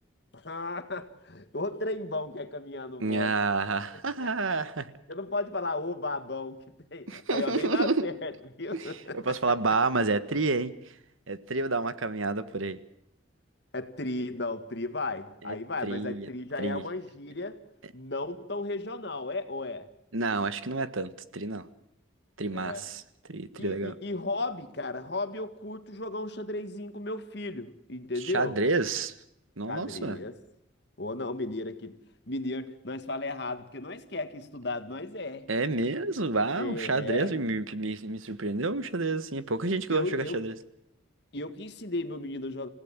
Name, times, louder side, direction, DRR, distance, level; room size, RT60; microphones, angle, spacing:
voice 1, 0.3-3.3 4.2-4.6 5.1-6.6 6.9-9.4 13.7-17.6 17.9-19.9 22.5-22.9 23.6-28.6 29.7-30.4 31.0-31.9 32.3-35.5 36.6-37.4 39.9-40.4 41.3-42.7, left 2 dB, 55° left, 10 dB, 1.9 m, -35 dB
voice 2, 3.0-4.9 7.1-8.0 8.7-8.8 9.1-10.7 11.3-12.8 15.4-15.5 15.8-16.3 16.6-16.8 20.1-21.7 22.4-23.0 23.3-23.9 28.2-29.1 29.6-30.2 35.5-40.5, right 3 dB, 85° right, 14 dB, 1.5 m, -29 dB
28.0 x 16.5 x 7.4 m, 0.79 s
head